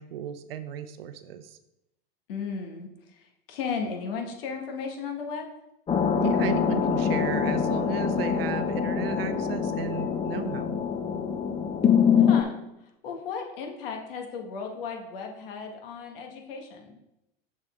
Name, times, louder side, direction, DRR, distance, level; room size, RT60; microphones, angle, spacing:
voice 1, 0.0-1.6 6.2-10.8, right 10 dB, 75° right, 11 dB, 0.7 m, -34 dB
voice 2, 2.3-5.5 12.2-17.0, left 5 dB, 70° left, 2 dB, 1.7 m, -35 dB
sound 1, 5.9-12.4, left 7 dB, 20° left, 0.7 m, -24 dB
6.6 x 6.4 x 3.6 m, 0.87 s
hypercardioid pair, 95°, 29 cm